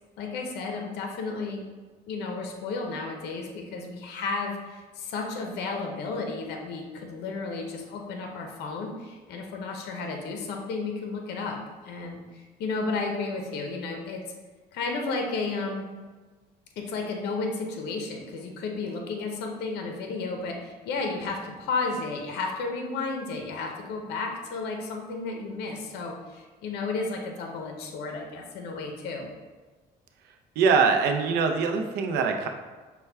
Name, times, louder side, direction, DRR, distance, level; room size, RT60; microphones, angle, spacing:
voice 1, 0.2-1.6 2.1-14.2 14.7-15.9 16.8-29.3, left 3 dB, 80° left, 2 dB, 0.6 m, -33 dB
voice 2, 30.6-32.5, right 5 dB, 80° right, 4 dB, 0.5 m, -23 dB
5.6 x 2.2 x 3.3 m, 1.3 s
cardioid pair, 110°, 17 cm